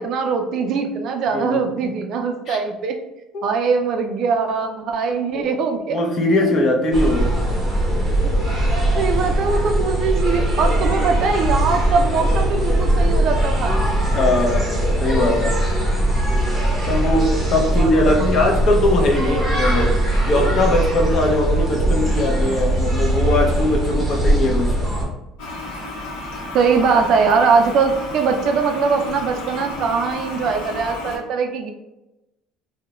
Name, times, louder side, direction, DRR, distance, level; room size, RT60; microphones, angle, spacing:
voice 1, 0.0-3.0 3.4-6.0 9.0-13.8 17.7-18.4 26.5-31.7, right 5 dB, 55° right, 5 dB, 0.3 m, -21 dB
voice 2, 5.9-7.3 14.1-15.6 16.8-20.0 20.3-24.8, left 1 dB, 45° left, 1 dB, 0.5 m, -20 dB
sound 1, 6.9-25.0, right 1 dB, 5° right, 0.7 m, -20 dB
Toilet flush, 25.4-31.2, left 2 dB, 85° left, 0.7 m, -32 dB
2.3 x 2.0 x 2.8 m, 0.94 s
cardioid pair, 140°, 0 cm